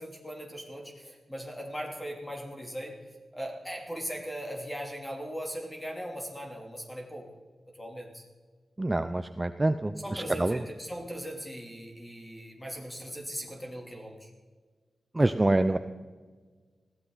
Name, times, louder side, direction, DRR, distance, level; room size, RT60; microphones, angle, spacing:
voice 1, 0.0-3.0 3.3-7.3 7.8-8.2 10.0-14.3, equal, 10° left, 0 dB, 3.0 m, -39 dB
voice 2, 8.8-9.9 10.4-10.6 15.2-15.8, right 2 dB, 15° right, 10 dB, 0.5 m, -25 dB
20.5 x 16.0 x 4.0 m, 1.5 s
wide cardioid pair, 135°, 0 cm